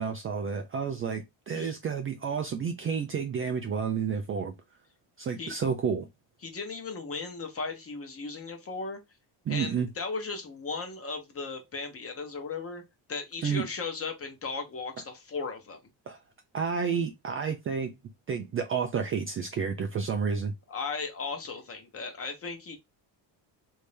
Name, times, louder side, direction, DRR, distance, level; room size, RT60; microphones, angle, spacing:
voice 1, 0.0-4.5 5.2-6.1 9.5-9.9 13.4-13.6 16.1-16.2 16.5-17.9 18.3-20.5, right 6 dB, 30° right, 0.3 m, -30 dB
voice 2, 6.4-9.0 9.5-12.8 13.1-15.8 20.7-22.8, left 4 dB, 30° left, 0.9 m, -36 dB
3.2 x 2.7 x 3.2 m
cardioid pair, 140°, 46 cm